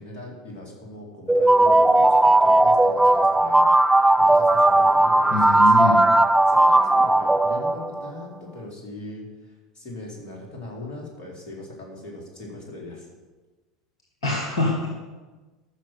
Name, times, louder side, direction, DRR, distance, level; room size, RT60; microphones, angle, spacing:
voice 1, 0.0-6.0 6.5-13.1, left 2 dB, 40° left, -2 dB, 4.4 m, -40 dB
sound 1, 1.3-8.1, right 2 dB, 5° right, 0.4 m, -17 dB
voice 2, 5.3-6.0 14.2-14.9, left 3 dB, 65° left, -1 dB, 2.0 m, -24 dB
14.5 x 6.5 x 6.6 m, 1.3 s
figure-of-eight pair, 80°, 3 cm